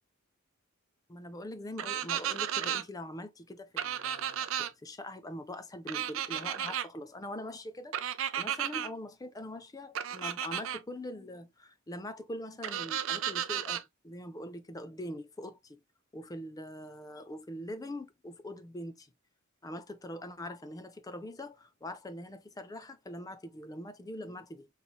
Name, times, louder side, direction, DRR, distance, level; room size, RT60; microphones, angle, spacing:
voice 1, 1.1-8.0 8.3-15.8 16.1-19.1 19.6-24.7, left 1 dB, 15° left, 0.4 m, -43 dB
sound 1, 1.8-2.8 3.8-4.7 5.9-6.9 7.9-8.9 9.9-10.8 12.6-13.8, right 10 dB, 65° right, 0.4 m, -33 dB
4.0 x 3.2 x 2.3 m
head